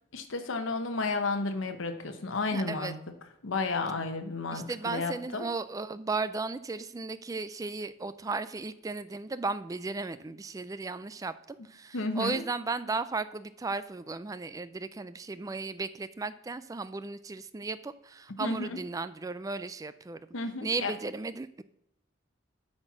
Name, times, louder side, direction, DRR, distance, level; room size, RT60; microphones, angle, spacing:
voice 1, 0.1-2.9 3.4-5.5 11.9-12.4 18.4-18.8 20.3-20.9, left 3 dB, 80° left, 6 dB, 0.9 m, -32 dB
voice 2, 2.5-2.9 4.5-20.2 20.6-21.6, right 3 dB, 15° right, 14 dB, 0.3 m, -35 dB
8.9 x 4.3 x 5.8 m, 0.83 s
head